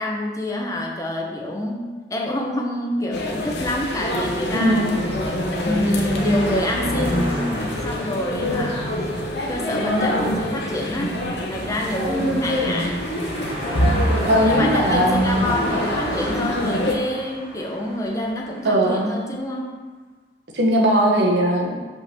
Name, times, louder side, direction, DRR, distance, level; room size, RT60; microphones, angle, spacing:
voice 1, 0.0-1.8 2.1-4.9 5.6-9.0 9.5-11.1 11.5-13.0 14.4-19.7, left 1 dB, 20° left, 0 dB, 0.8 m, -27 dB
sound 1, 3.1-16.9, left 1 dB, 70° left, 0.9 m, -25 dB
sound 2, 3.7-19.0, equal, 30° right, 1.1 m, -35 dB
voice 2, 4.5-4.9 12.0-12.3 14.2-15.5 18.6-19.0 20.5-21.8, equal, 80° right, 0 dB, 1.1 m, -19 dB
5.5 x 3.8 x 5.8 m, 1.4 s
head